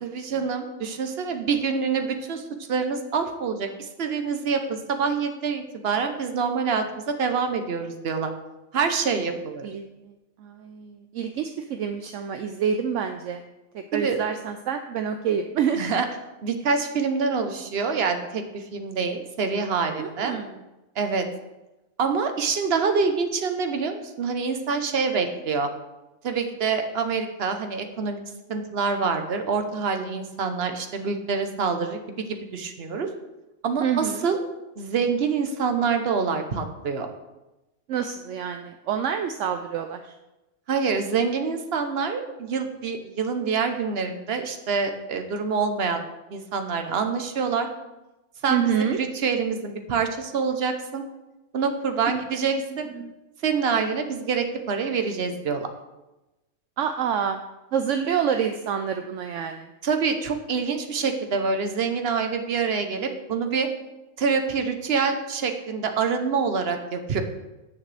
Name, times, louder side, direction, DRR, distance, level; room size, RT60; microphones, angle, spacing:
voice 1, 0.0-2.4 2.7-8.3 8.7-9.7 13.9-14.2 15.8-16.1 16.4-20.4 21.0-21.3 22.0-25.7 26.2-28.2 28.5-33.1 33.6-34.4 34.8-37.1 40.7-46.0 46.3-47.7 48.4-51.0 51.5-52.9 53.4-55.7 59.8-63.7 64.2-67.2, right 5 dB, 50° right, 6 dB, 1.1 m, -26 dB
voice 2, 9.6-10.1 10.4-13.4 13.7-15.8 20.0-20.6 33.8-34.3 37.9-40.2 48.5-49.0 52.5-52.6 52.9-53.1 56.8-57.4 57.7-59.7, right 7 dB, 70° right, 7 dB, 0.9 m, -27 dB
16.0 x 6.4 x 3.4 m, 1.0 s
omnidirectional pair, 1.4 m